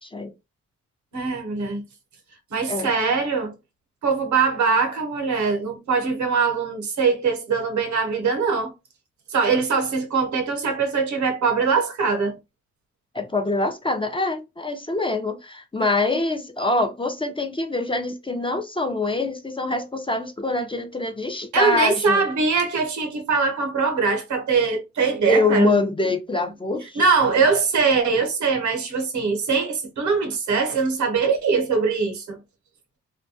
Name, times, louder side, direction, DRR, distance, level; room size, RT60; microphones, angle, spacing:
voice 1, 0.0-0.3 2.7-2.9 13.1-22.2 25.3-27.0, left 2 dB, 20° left, 0.5 m, -24 dB
voice 2, 1.1-1.8 2.5-3.5 4.0-8.7 9.3-12.4 21.5-25.8 26.9-32.4, right 5 dB, 75° right, 0.8 m, -22 dB
2.2 x 2.2 x 2.7 m
cardioid pair, 60°, 29 cm